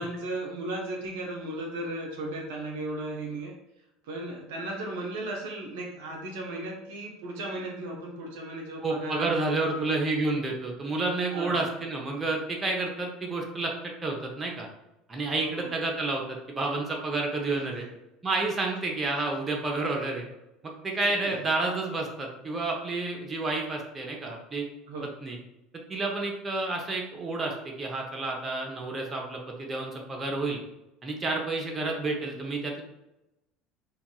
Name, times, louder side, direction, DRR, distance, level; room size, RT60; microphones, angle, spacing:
voice 1, 0.0-3.5 4.0-9.9 11.3-11.7 15.4-15.7 17.8-17.9 20.6-20.7 21.0-21.4 24.9-25.1, right 2 dB, 65° right, 0 dB, 0.5 m, -36 dB
voice 2, 8.8-14.7 15.1-17.9 18.2-20.3 20.6-24.6 25.2-25.4 25.9-30.6 31.0-32.8, right 3 dB, 25° right, 0 dB, 0.7 m, -30 dB
3.7 x 2.3 x 2.3 m, 0.90 s
figure-of-eight pair, 70°, 0 cm